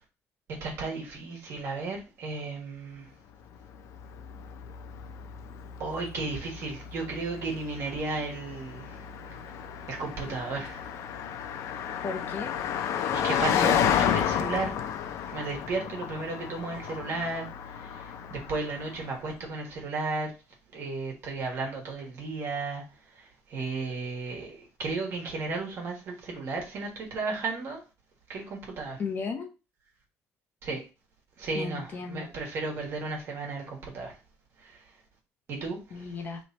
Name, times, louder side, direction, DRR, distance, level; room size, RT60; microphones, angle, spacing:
voice 1, 0.6-3.0 5.8-8.8 9.9-10.8 13.1-14.7 15.3-17.5 18.3-20.3 20.7-22.8 23.5-27.8 28.3-29.0 30.6-30.8 31.4-34.1 35.5-35.8, right 3 dB, 55° right, 1.6 m, -34 dB
Car passing by, 3.5-19.2, left 9 dB, 75° left, 0.4 m, -32 dB
voice 2, 12.0-12.5 29.0-29.5 31.5-32.3 35.9-36.4, left 5 dB, 40° left, 0.8 m, -35 dB
3.2 x 3.0 x 4.1 m
cardioid pair, 150°, 5 cm